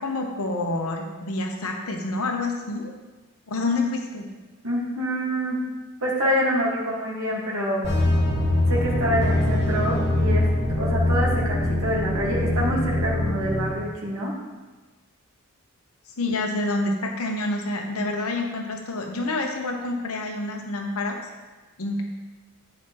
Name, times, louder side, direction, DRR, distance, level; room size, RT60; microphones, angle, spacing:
voice 1, 0.0-2.9 3.5-4.2 16.2-21.2 21.8-22.0, left 2 dB, 75° left, 2 dB, 0.9 m, -27 dB
voice 2, 4.6-5.6 6.0-7.9 8.7-10.5 10.8-14.4 16.3-16.4, equal, 70° right, -3 dB, 1.6 m, -26 dB
sound 1, 7.8-13.7, left 1 dB, 50° left, 1.6 m, -23 dB
9.2 x 4.9 x 3.0 m, 1.2 s
head